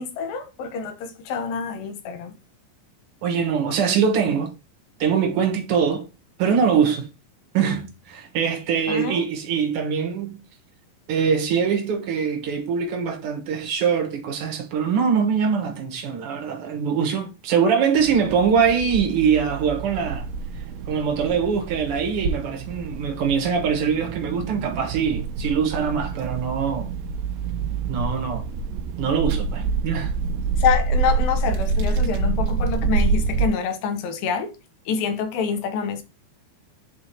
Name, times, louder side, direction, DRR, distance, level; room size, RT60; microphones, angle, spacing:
voice 1, 0.0-2.4 8.9-9.2 30.6-34.6 34.9-36.0, left 6 dB, 75° left, 2.5 m, -26 dB
voice 2, 3.2-4.5 5.0-6.1 6.4-7.1 7.5-10.4 11.1-20.3 20.9-26.9 27.9-28.5 29.0-30.1, right 6 dB, 60° right, 1.6 m, -23 dB
sound 1, 18.0-33.5, right 4 dB, 80° right, 2.5 m, -27 dB
10.5 x 4.0 x 2.8 m
omnidirectional pair, 4.2 m